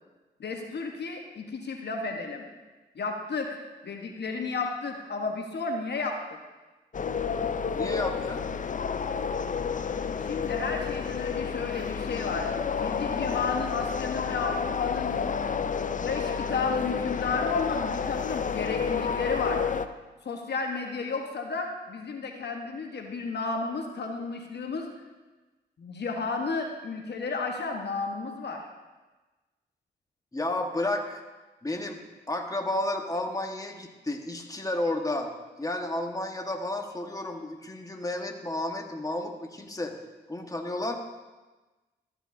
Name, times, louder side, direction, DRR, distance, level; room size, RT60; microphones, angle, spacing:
voice 1, 0.4-2.5 2.9-3.6 3.8-6.2 10.2-12.5 12.8-15.2 16.0-19.6 20.2-24.9 25.8-28.7, left 4 dB, 60° left, 3 dB, 1.1 m, -32 dB
sound 1, 6.9-19.9, left 6 dB, 40° left, 0.5 m, -30 dB
voice 2, 7.7-8.4 30.3-31.2 31.6-32.0 32.3-35.3 35.6-39.9 40.3-40.9, left 1 dB, 20° left, 3 dB, 1.4 m, -32 dB
13.5 x 8.0 x 2.7 m, 1.2 s
supercardioid pair, 45°, 19 cm